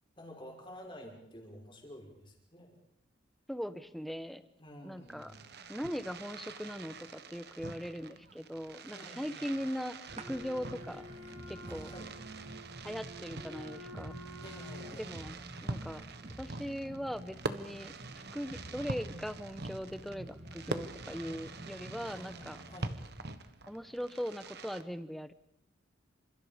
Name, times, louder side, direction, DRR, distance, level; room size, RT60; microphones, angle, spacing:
voice 1, 0.2-2.8 4.6-5.4 8.9-9.6 11.6-12.1 14.4-15.1 22.1-23.0, left 1 dB, 25° left, 0 dB, 6.0 m, -51 dB
voice 2, 3.5-4.4 4.8-5.3 5.7-11.1 11.5-11.9 12.8-14.2 14.9-15.3 15.6-16.1 16.4-17.9 18.3-22.6 23.7-25.3, equal, ahead, 11 dB, 1.1 m, -40 dB
Fireworks, 5.0-24.8, right 3 dB, 55° right, 1.4 m, -45 dB
sound 1, 10.1-22.9, right 1 dB, 35° right, 1.4 m, -49 dB
Wind instrument woodwind instrument, 10.1-15.0, left 2 dB, 75° right, 3.2 m, -51 dB
29.0 x 27.0 x 5.3 m, 0.76 s
head